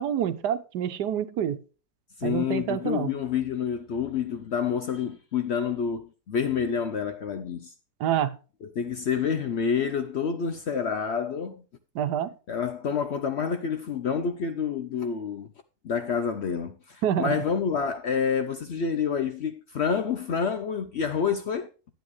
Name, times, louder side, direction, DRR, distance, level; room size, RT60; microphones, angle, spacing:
voice 1, 0.0-1.6 2.2-3.1 8.0-8.4 11.9-12.3 17.0-17.4, right 9 dB, 85° right, 1.4 m, -27 dB
voice 2, 2.2-7.7 8.6-11.6 12.5-15.5 15.8-21.7, left 6 dB, 60° left, 0.7 m, -28 dB
11.0 x 8.9 x 3.1 m
omnidirectional pair, 1.7 m